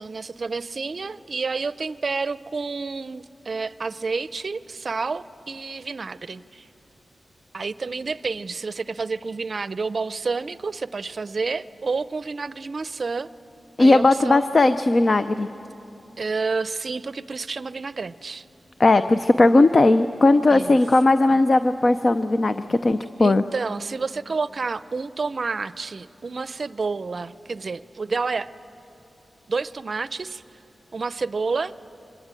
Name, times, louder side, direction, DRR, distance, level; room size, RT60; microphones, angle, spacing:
voice 1, 0.0-6.7 7.5-13.3 13.8-14.5 16.2-18.5 20.5-20.8 21.3-21.4 23.2-28.5 29.5-30.4 30.9-31.7, right 4 dB, 55° right, 16 dB, 0.5 m, -29 dB
voice 2, 13.8-15.5 18.8-23.4, left 2 dB, 45° left, 10 dB, 0.6 m, -17 dB
25.0 x 20.5 x 9.0 m, 2.9 s
wide cardioid pair, 80°, 0 cm